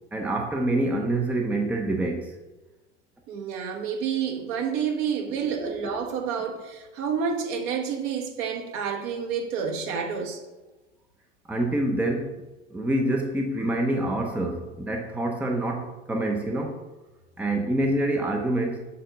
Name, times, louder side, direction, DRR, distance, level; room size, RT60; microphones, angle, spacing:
voice 1, 0.1-2.4 5.3-5.9 11.5-12.4 12.7-16.8 17.4-18.9, right 1 dB, 5° right, 2 dB, 0.7 m, -26 dB
voice 2, 3.3-10.4, right 6 dB, 50° right, 3 dB, 1.3 m, -29 dB
6.8 x 3.5 x 5.2 m, 1.1 s
hypercardioid pair, 95°, 36 cm